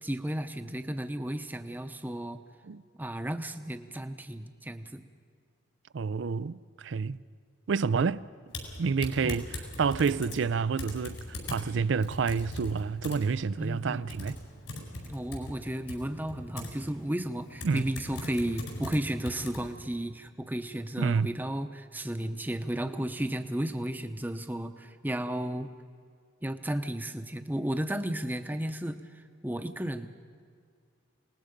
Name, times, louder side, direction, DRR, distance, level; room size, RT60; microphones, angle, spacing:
voice 1, 0.0-2.4 3.0-5.0 9.2-9.4 13.6-14.1 15.1-25.7 26.4-30.1, right 1 dB, 10° right, 0.8 m, -33 dB
voice 2, 5.9-7.2 7.7-8.3 8.8-14.4 17.6-17.9 21.0-21.4, right 5 dB, 75° right, 0.4 m, -29 dB
Typing, 8.5-19.7, left 1 dB, 85° left, 4.7 m, -41 dB
27.0 x 19.5 x 5.2 m
head